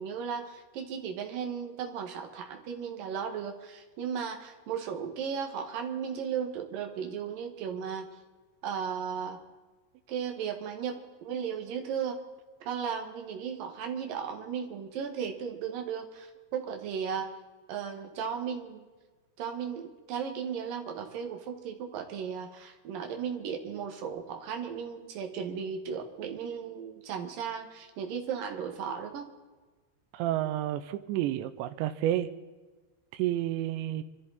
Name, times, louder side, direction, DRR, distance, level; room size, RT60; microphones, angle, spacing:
voice 1, 0.0-8.1 8.6-9.4 10.1-12.2 12.6-17.3 17.7-18.9 19.4-29.3, right 7 dB, 60° right, 4 dB, 3.1 m, -35 dB
voice 2, 30.1-32.3 33.1-34.0, right 13 dB, 90° right, 10 dB, 3.0 m, -30 dB
26.0 x 13.0 x 4.2 m, 1.3 s
omnidirectional pair, 5.1 m